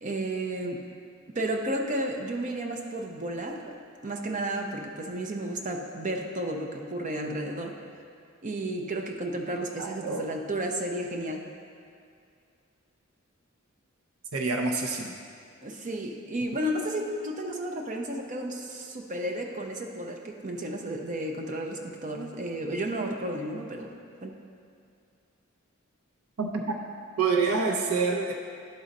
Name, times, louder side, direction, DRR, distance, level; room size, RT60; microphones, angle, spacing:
voice 1, 0.0-0.8 1.3-3.7 4.0-7.8 8.4-11.5 15.6-23.9 24.2-24.3, right 1 dB, 35° right, 3 dB, 0.6 m, -32 dB
voice 2, 9.8-10.2 14.3-15.1 26.4-26.8 27.2-28.3, right 4 dB, 85° right, 2 dB, 0.5 m, -27 dB
11.0 x 3.9 x 4.0 m, 2.3 s
head